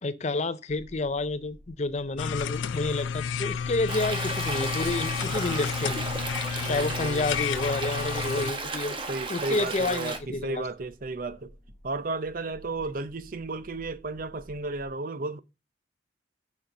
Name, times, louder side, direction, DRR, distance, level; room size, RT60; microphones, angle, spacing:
voice 1, 0.0-6.0 6.7-9.0 9.3-10.6, left 2 dB, 35° left, 0.5 m, -29 dB
sound 1, 0.7-14.9, left 1 dB, 5° right, 3.0 m, -52 dB
sound 2, 2.2-8.5, left 7 dB, 90° left, 0.4 m, -31 dB
Stream, 3.9-10.2, right 3 dB, 25° right, 1.0 m, -34 dB
voice 2, 6.6-7.3 9.1-11.5 11.8-15.4, right 3 dB, 50° right, 0.6 m, -33 dB
6.3 x 5.6 x 6.7 m
head